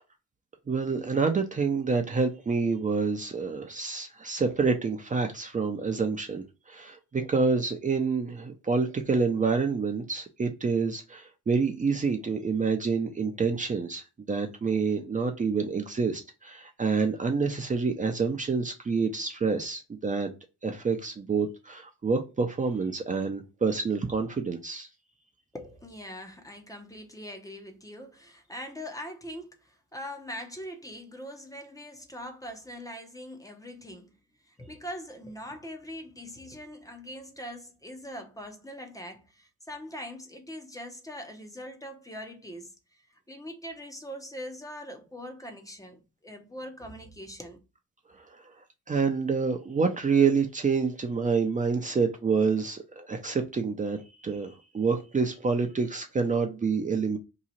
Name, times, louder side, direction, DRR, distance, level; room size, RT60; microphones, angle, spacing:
voice 1, 0.7-14.0 14.3-20.3 20.6-24.9 48.9-57.2, right 5 dB, 25° right, 0.6 m, -27 dB
voice 2, 25.5-34.1 34.4-47.6, equal, 10° left, 0.7 m, -42 dB
2.9 x 2.3 x 4.0 m
cardioid pair, 90°, 30 cm